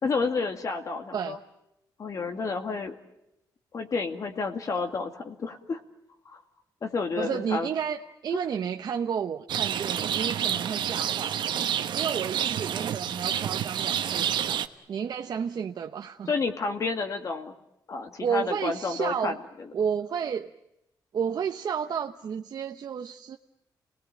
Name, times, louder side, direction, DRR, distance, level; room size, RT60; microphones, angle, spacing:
voice 1, 0.0-1.4 2.0-3.0 3.7-5.8 6.3-6.4 6.8-7.7 8.3-8.4 16.3-17.5 17.9-19.7, left 4 dB, 45° left, 5 dB, 2.2 m, -30 dB
voice 2, 7.2-11.4 11.9-16.3 18.2-19.4 19.7-20.5 21.1-23.4, right 7 dB, 60° right, 5 dB, 1.0 m, -31 dB
Rain, 9.5-14.7, right 9 dB, 80° right, 1.1 m, -29 dB
29.0 x 19.5 x 9.0 m, 0.85 s
cardioid pair, 125°, 8 cm